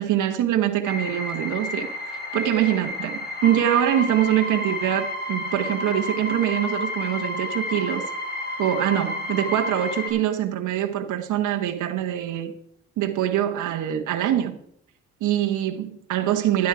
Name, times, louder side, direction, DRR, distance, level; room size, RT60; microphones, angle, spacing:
voice 1, 0.0-1.9 2.3-8.0 8.6-12.5 13.0-14.6 15.2-16.7, right 11 dB, 80° right, 1.2 m, -24 dB
sound 1, 0.8-10.1, left 2 dB, 30° left, 5.0 m, -31 dB
12.5 x 10.0 x 4.7 m
cardioid pair, 90°, 30 cm